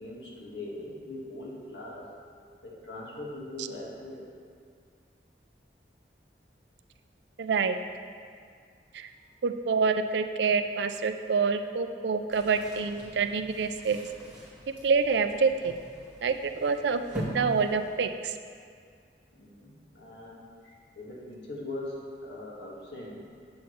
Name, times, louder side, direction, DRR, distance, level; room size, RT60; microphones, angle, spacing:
voice 1, 0.0-2.1 2.6-4.2 19.3-23.3, left 1 dB, 85° left, -4 dB, 1.7 m, -41 dB
voice 2, 7.4-7.8 8.9-9.1 9.4-14.1 14.8-15.7 16.2-18.3, right 5 dB, 75° right, 8 dB, 0.4 m, -27 dB
sound 1, 12.3-18.5, equal, 5° right, 2.0 m, -42 dB
8.7 x 7.0 x 3.2 m, 2.1 s
head